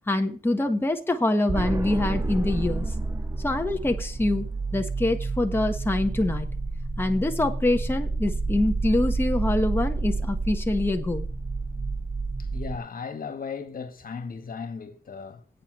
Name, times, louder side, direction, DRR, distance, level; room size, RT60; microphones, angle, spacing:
voice 1, 0.1-2.9 3.4-6.5 7.0-11.3, left 2 dB, 15° left, 1.4 m, -25 dB
sound 1, 1.5-12.8, right 3 dB, 20° right, 0.5 m, -29 dB
voice 2, 12.4-15.6, left 5 dB, 65° left, 1.9 m, -36 dB
8.6 x 7.5 x 7.5 m
cardioid pair, 85°, 16 cm